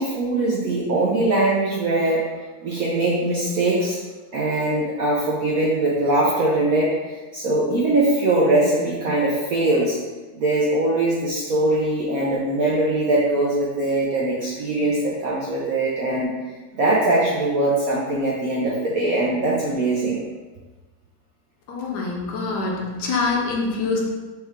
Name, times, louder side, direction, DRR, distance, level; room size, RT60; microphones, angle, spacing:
voice 1, 0.0-2.2 2.6-4.0 4.3-10.0 10.3-16.3 16.7-20.2, right 2 dB, 70° right, -5 dB, 0.8 m, -21 dB
voice 2, 21.7-24.1, left 3 dB, 60° left, -1 dB, 1.2 m, -25 dB
4.5 x 3.4 x 3.5 m, 1.2 s
omnidirectional pair, 2.3 m